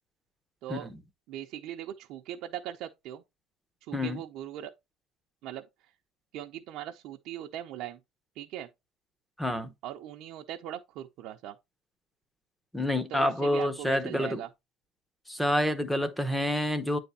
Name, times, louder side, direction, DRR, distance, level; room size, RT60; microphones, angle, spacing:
voice 1, 1.3-3.2 3.8-4.7 5.4-5.7 6.3-8.0 8.4-8.7 9.8-11.6 13.1-14.5, right 11 dB, 55° right, 0.6 m, -39 dB
voice 2, 9.4-9.7 12.7-14.4 15.3-17.0, left 1 dB, 5° left, 0.7 m, -28 dB
9.0 x 3.4 x 4.1 m
cardioid pair, 170°, 0 cm